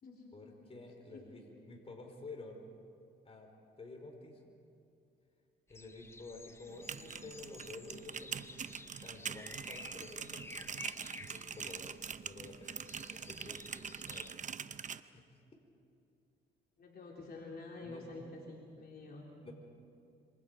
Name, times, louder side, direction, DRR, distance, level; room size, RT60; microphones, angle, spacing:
voice 1, 0.3-2.7 3.2-3.5 3.8-4.5 5.7-8.7 9.0-10.9 11.3-14.5 15.1-15.4 17.8-18.1 19.4-19.5, left 2 dB, 30° left, 2 dB, 4.6 m, -51 dB
sound 1, 5.7-14.4, left 2 dB, 15° left, 0.8 m, -53 dB
sound 2, 6.7-15.0, right 7 dB, 40° right, 0.7 m, -44 dB
voice 2, 16.8-19.5, left 2 dB, 50° left, -2 dB, 3.7 m, -48 dB
27.5 x 26.0 x 5.3 m, 2.5 s
cardioid pair, 90°, 20 cm